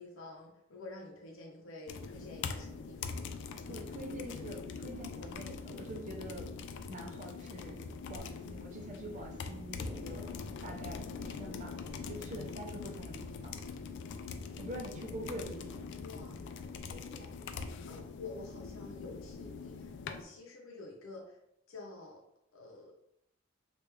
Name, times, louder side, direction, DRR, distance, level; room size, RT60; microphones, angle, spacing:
voice 1, 0.0-3.4 16.0-17.0 17.9-21.4 21.7-22.2 22.5-22.9, left 2 dB, 90° left, 0 dB, 0.7 m, -49 dB
sound 1, 1.9-20.2, left 5 dB, 60° left, 0.3 m, -43 dB
voice 2, 3.7-6.5 6.9-7.8 8.1-10.3 10.6-11.7 12.1-13.6 14.6-15.8, right 1 dB, 40° right, 1 dB, 0.6 m, -45 dB
3.3 x 2.5 x 3.1 m, 0.77 s
head